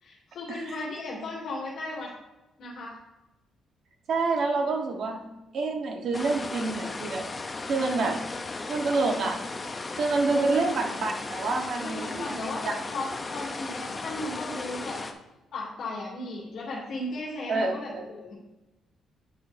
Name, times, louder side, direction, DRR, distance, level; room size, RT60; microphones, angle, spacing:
voice 1, 0.0-2.1 2.6-2.9 10.4-10.6 11.8-15.0 15.5-18.3, left 2 dB, 55° left, -8 dB, 2.6 m, -36 dB
voice 2, 4.1-5.3 5.5-7.2 7.7-8.2 8.7-9.4 10.0-12.7 17.5-18.0, right 3 dB, 55° right, 2 dB, 1.1 m, -27 dB
sound 1, 6.1-15.1, left 3 dB, 20° left, 0.5 m, -36 dB
9.4 x 6.6 x 2.6 m, 1.0 s
cardioid pair, 150°, 0 cm